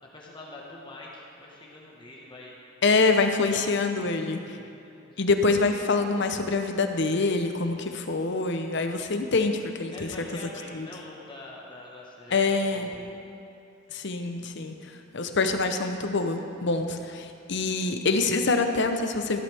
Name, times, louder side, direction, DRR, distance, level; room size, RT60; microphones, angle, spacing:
voice 1, 0.1-2.6 4.0-5.2 9.9-13.2, left 2 dB, 25° left, -3 dB, 1.4 m, -45 dB
voice 2, 2.8-4.4 5.2-10.1 10.7-10.9 12.3-12.9 13.9-14.7 15.1-19.4, left 3 dB, 60° left, 6 dB, 0.8 m, -25 dB
14.0 x 12.5 x 3.5 m, 2.6 s
head